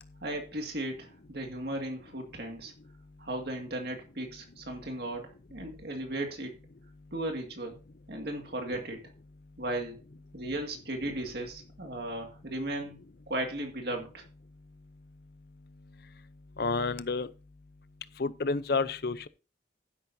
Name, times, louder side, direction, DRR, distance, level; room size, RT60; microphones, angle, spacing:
voice 1, 0.2-2.7 3.2-6.5 7.1-7.8 8.1-9.0 9.6-10.0 10.3-13.0 13.3-14.2, right 1 dB, 55° right, 2.1 m, -36 dB
voice 2, 16.6-17.3 18.2-19.3, left 4 dB, 55° left, 0.6 m, -29 dB
12.0 x 10.5 x 2.7 m
head